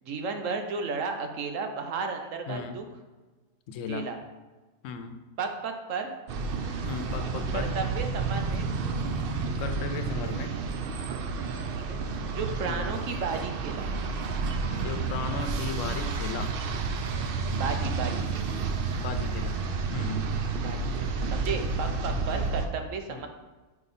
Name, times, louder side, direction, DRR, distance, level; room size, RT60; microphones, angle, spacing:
voice 1, 0.0-2.8 3.9-4.2 5.4-6.1 7.5-8.7 11.7-12.0 12.3-13.9 17.5-18.3 20.6-23.3, right 4 dB, 75° right, 5 dB, 1.1 m, -33 dB
voice 2, 2.5-2.8 3.7-4.1 4.8-5.1 6.9-7.7 9.6-10.6 12.7-12.9 14.7-16.5 19.0-19.6 19.9-20.3 22.3-22.5 23.1-23.3, left 5 dB, 75° left, 8 dB, 0.9 m, -36 dB
sound 1, 6.3-22.7, right 4 dB, 60° right, 0.6 m, -30 dB
5.1 x 4.9 x 4.1 m, 1.2 s
omnidirectional pair, 1.3 m